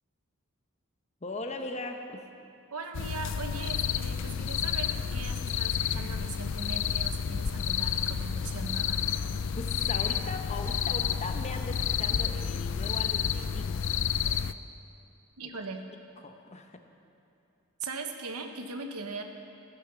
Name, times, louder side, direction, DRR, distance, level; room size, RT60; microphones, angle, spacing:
voice 1, 1.2-2.2 9.6-13.8 15.4-15.5 16.2-16.8, left 2 dB, 30° left, 5 dB, 0.9 m, -39 dB
voice 2, 2.7-9.0 15.4-15.8 17.8-19.2, right 4 dB, 90° right, 5 dB, 1.2 m, -39 dB
sound 1, 2.9-14.5, left 7 dB, 55° left, 0.4 m, -30 dB
15.0 x 11.0 x 6.9 m, 2.6 s
head